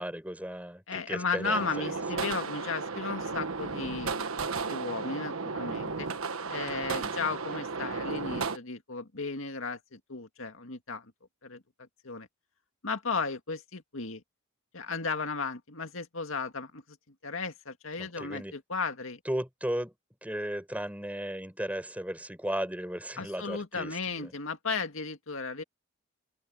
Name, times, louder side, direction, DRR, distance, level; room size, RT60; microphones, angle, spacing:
voice 1, 0.0-2.3 7.0-7.3 18.0-18.5 19.3-19.9 20.2-24.3, right 1 dB, 5° right, 5.4 m, -36 dB
voice 2, 0.9-4.1 4.7-6.1 6.5-11.1 11.4-12.3 12.8-14.2 14.7-17.0 17.2-19.2 23.2-25.6, left 4 dB, 70° left, 2.1 m, -35 dB
sound 1, 1.4-8.6, right 4 dB, 90° right, 1.4 m, -34 dB
head